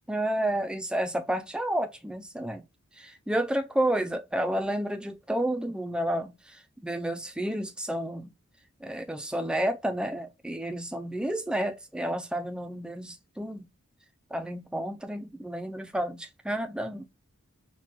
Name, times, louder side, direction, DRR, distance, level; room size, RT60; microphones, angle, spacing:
voice 1, 0.1-2.6 3.0-6.3 6.8-8.3 8.8-13.7 14.3-17.1, right 1 dB, 5° right, 0.3 m, -30 dB
5.7 x 2.2 x 3.0 m
head